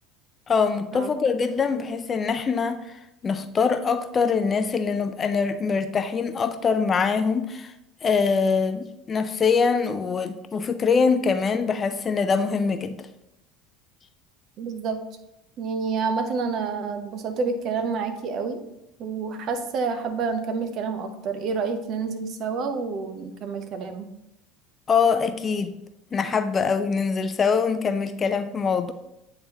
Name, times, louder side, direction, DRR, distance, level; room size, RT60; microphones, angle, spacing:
voice 1, 0.5-2.8 3.2-7.7 8.0-13.0 24.9-25.7 26.1-28.9, left 5 dB, 30° left, 0.5 m, -23 dB
voice 2, 14.6-15.0 15.6-18.6 19.0-24.1, right 5 dB, 50° right, 0.7 m, -28 dB
8.7 x 3.9 x 2.9 m
figure-of-eight pair, 70°, 0 cm